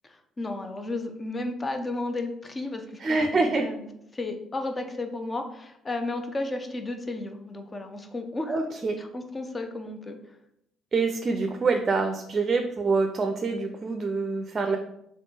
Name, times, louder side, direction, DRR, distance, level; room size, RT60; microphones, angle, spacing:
voice 1, 0.0-3.0 3.3-3.9 4.1-8.6 9.0-10.2, left 2 dB, 30° left, 6 dB, 0.7 m, -33 dB
voice 2, 3.0-3.7 8.5-9.0 10.9-14.8, right 4 dB, 40° right, 5 dB, 0.5 m, -25 dB
3.4 x 3.1 x 4.2 m, 0.78 s
hypercardioid pair, 60°, 0 cm